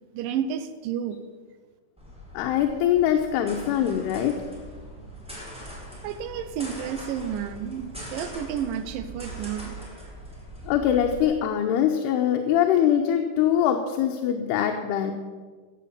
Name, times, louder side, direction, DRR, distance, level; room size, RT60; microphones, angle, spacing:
voice 1, 0.1-1.2 6.0-9.8, right 8 dB, 80° right, 10 dB, 2.1 m, -31 dB
sound 1, 2.0-11.2, equal, ahead, 3.6 m, -41 dB
voice 2, 2.3-4.4 10.7-15.1, left 9 dB, 85° left, 3 dB, 2.9 m, -23 dB
15.5 x 6.7 x 7.1 m, 1.5 s
omnidirectional pair, 4.6 m